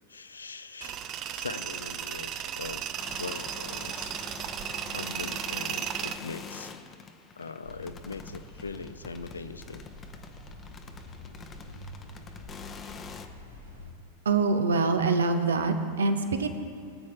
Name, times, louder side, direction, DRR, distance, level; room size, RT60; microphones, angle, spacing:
voice 1, 0.1-1.0 1.3-2.8 3.2-4.1 4.9-6.7 7.4-9.9, left 4 dB, 75° left, 11 dB, 0.6 m, -41 dB
Tools, 0.8-6.2, right 10 dB, 35° right, 0.6 m, -35 dB
sound 1, 2.9-13.3, left 5 dB, 25° left, 0.9 m, -45 dB
sound 2, 7.6-13.9, left 1 dB, 90° right, 2.6 m, -46 dB
voice 2, 14.2-16.5, right 4 dB, 70° right, 8 dB, 1.0 m, -25 dB
22.0 x 8.5 x 3.3 m, 2.4 s
figure-of-eight pair, 90°, 0 cm